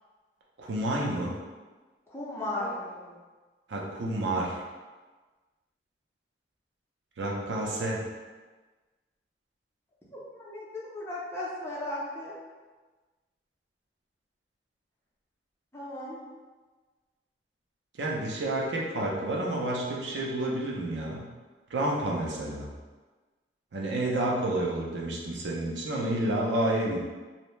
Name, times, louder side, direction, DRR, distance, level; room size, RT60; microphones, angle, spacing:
voice 1, 0.6-1.4 3.7-4.6 7.2-8.0 18.0-21.3 21.7-22.7 23.7-27.0, right 1 dB, 90° right, -2 dB, 0.5 m, -29 dB
voice 2, 2.1-3.2 10.1-12.3 15.7-16.2, left 1 dB, 15° left, -7 dB, 0.5 m, -36 dB
2.6 x 2.1 x 3.0 m, 1.3 s
head